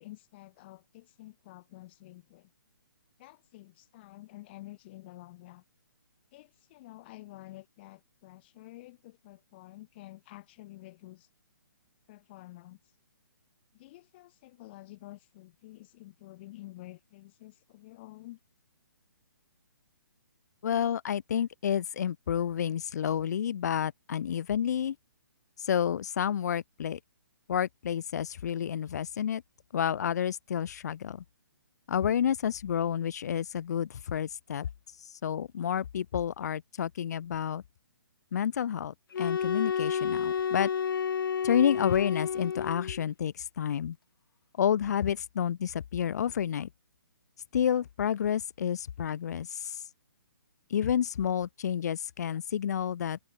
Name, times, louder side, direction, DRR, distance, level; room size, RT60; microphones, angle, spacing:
voice 1, 0.0-2.5 3.2-5.6 6.3-11.3 12.1-12.8 13.7-18.4, left 18 dB, 30° left, 3.8 m, -50 dB
voice 2, 20.6-25.0 25.6-27.0 27.5-29.4 29.7-31.2 31.9-34.7 35.2-37.6 38.3-40.7 41.4-44.0 44.6-46.7 47.5-49.8 50.7-53.2, left 9 dB, 50° left, 1.1 m, -30 dB
sound 1, 39.1-43.0, left 7 dB, 85° left, 0.4 m, -30 dB
hypercardioid pair, 160°, 11 cm